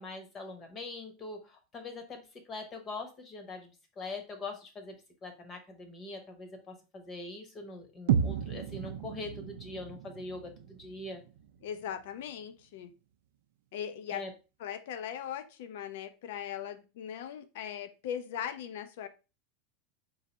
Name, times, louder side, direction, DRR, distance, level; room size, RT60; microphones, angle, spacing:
voice 1, 0.0-2.2 2.5-3.7 4.0-5.0 5.2-11.2 14.1-14.3, left 3 dB, 25° left, 5 dB, 0.9 m, -42 dB
sound 1, 8.1-12.1, right 8 dB, 75° right, 0.4 m, -34 dB
voice 2, 11.6-12.9 13.7-14.2 14.6-19.1, left 9 dB, 70° left, 11 dB, 0.5 m, -39 dB
3.9 x 2.6 x 4.1 m, 0.31 s
supercardioid pair, 160°, 0 cm